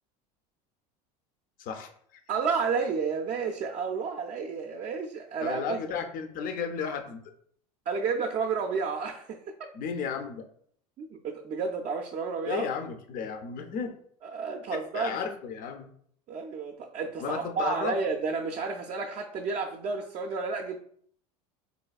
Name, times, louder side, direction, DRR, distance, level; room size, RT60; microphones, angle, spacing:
voice 1, 2.3-5.8 7.9-9.5 11.0-12.7 14.2-15.2 16.3-20.8, right 5 dB, 40° right, 1 dB, 0.4 m, -31 dB
voice 2, 5.4-7.2 9.7-10.4 12.5-13.9 14.7-15.9 17.2-18.0, left 6 dB, 45° left, 6 dB, 0.5 m, -33 dB
4.1 x 2.2 x 2.3 m, 0.62 s
hypercardioid pair, 90°, 19 cm